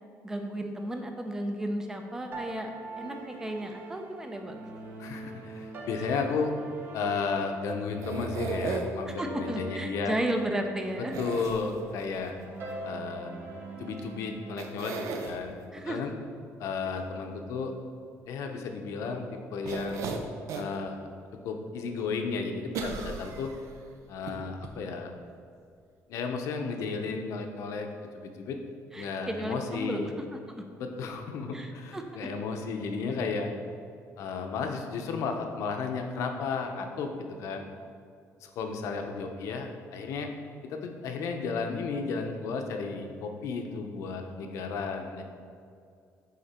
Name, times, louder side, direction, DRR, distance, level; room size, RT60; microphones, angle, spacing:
voice 1, 0.2-4.6 9.1-11.1 15.7-16.0 28.5-28.6 28.9-30.6 31.5-32.0 44.3-44.5, right 1 dB, 10° right, 4 dB, 0.5 m, -34 dB
sound 1, 2.3-14.5, right 3 dB, 35° right, 0.9 m, -43 dB
voice 2, 5.0-6.5 6.9-10.2 11.0-12.3 12.8-13.3 13.8-15.6 15.9-16.1 16.6-17.7 18.3-20.1 20.5-21.1 21.4-23.5 24.1-25.1 26.1-27.9 28.1-28.6 29.0-30.1 30.8-33.5 34.2-37.6 38.4-40.3 40.6-45.2, left 4 dB, 65° left, 4 dB, 0.7 m, -33 dB
sound 2, 8.0-9.1 11.1-12.0 14.0-14.1 14.6-15.4 19.6-20.8 21.3-21.4 22.7-23.7 24.3-24.4 24.6-24.7, right 4 dB, 65° right, 0.7 m, -35 dB
8.8 x 3.9 x 4.3 m, 2.4 s
cardioid pair, 175°, 6 cm